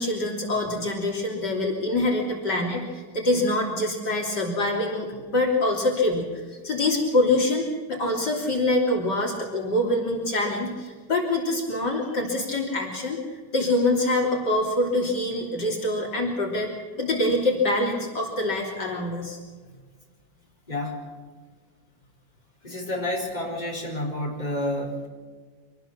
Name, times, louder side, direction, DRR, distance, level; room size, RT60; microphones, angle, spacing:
voice 1, 0.0-16.7 17.0-19.4, left 1 dB, 65° left, 0 dB, 3.8 m, -25 dB
voice 2, 20.7-21.0 22.6-25.1, left 1 dB, 20° left, -1 dB, 5.3 m, -29 dB
26.0 x 19.5 x 6.0 m, 1.5 s
omnidirectional pair, 2.0 m